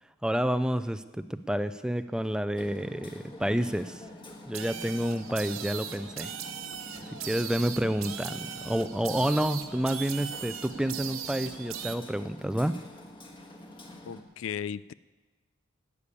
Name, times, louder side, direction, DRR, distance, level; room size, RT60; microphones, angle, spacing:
voice 1, 0.2-4.0 4.5-6.3 7.3-12.7, equal, 5° right, 12 dB, 0.3 m, -29 dB
Hammer, 2.5-14.2, left 1 dB, 25° left, 1.5 m, -47 dB
sound 1, 4.5-12.0, right 8 dB, 85° right, 1.0 m, -39 dB
voice 2, 14.1-14.9, left 8 dB, 80° left, 18 dB, 0.4 m, -35 dB
12.0 x 8.5 x 9.8 m, 1.3 s
head